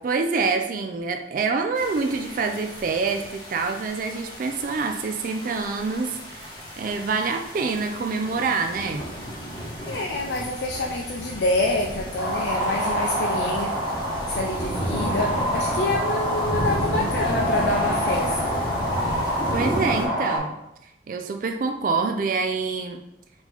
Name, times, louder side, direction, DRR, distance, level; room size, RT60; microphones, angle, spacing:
voice 1, 0.0-6.5 6.8-9.1 19.5-20.5 21.1-23.0, right 4 dB, 50° right, 5 dB, 0.3 m, -26 dB
sound 1, 1.8-20.0, right 1 dB, 25° left, 0.9 m, -33 dB
voice 2, 9.8-13.7 14.3-18.4, left 2 dB, 70° left, -1 dB, 0.5 m, -27 dB
sound 2, 12.2-20.4, equal, 10° right, 1.1 m, -27 dB
4.3 x 2.8 x 4.0 m, 0.86 s
head